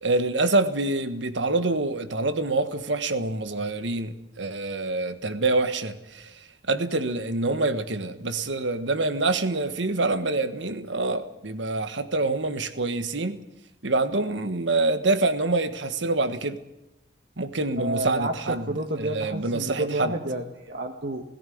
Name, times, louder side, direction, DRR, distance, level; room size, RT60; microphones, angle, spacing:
voice 1, 0.0-6.3 6.7-13.4 13.8-16.6 17.4-18.7 19.0-20.2, right 2 dB, 85° right, 1.4 m, -26 dB
voice 2, 17.8-18.3 18.7-21.2, right 2 dB, 60° right, 1.6 m, -30 dB
18.0 x 16.5 x 9.4 m
head